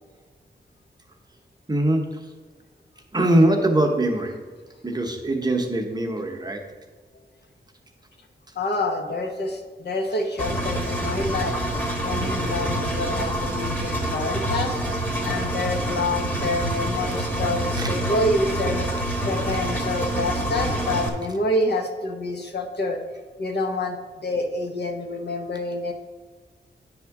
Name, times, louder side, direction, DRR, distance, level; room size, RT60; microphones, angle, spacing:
voice 1, 1.7-2.3 3.1-4.4 4.8-6.6 17.8-17.9, right 1 dB, 20° right, 2 dB, 0.9 m, -22 dB
voice 2, 8.6-11.6 12.0-14.7 15.2-18.9 19.2-23.0 23.4-25.9, left 2 dB, 65° left, 3 dB, 0.9 m, -27 dB
Engine, 10.4-21.1, right 1 dB, 10° left, 1.2 m, -27 dB
9.3 x 3.6 x 5.8 m, 1.5 s
wide cardioid pair, 135°, 18 cm